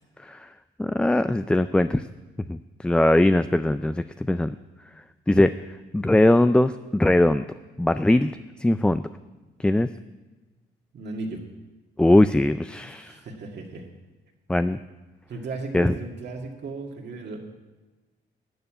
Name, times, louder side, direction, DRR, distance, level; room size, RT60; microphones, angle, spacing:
voice 1, 0.8-2.0 2.5-4.6 5.3-5.5 5.9-7.4 7.8-8.3 8.6-9.0 9.6-9.9 12.0-13.2 14.5-14.8 15.7-15.9, left 1 dB, 5° left, 12 dB, 0.3 m, -20 dB
voice 2, 10.9-11.4 12.9-13.9 15.3-17.4, right 3 dB, 60° right, 0 dB, 1.9 m, -35 dB
12.5 x 6.8 x 8.8 m, 1.2 s
cardioid pair, 90°, 20 cm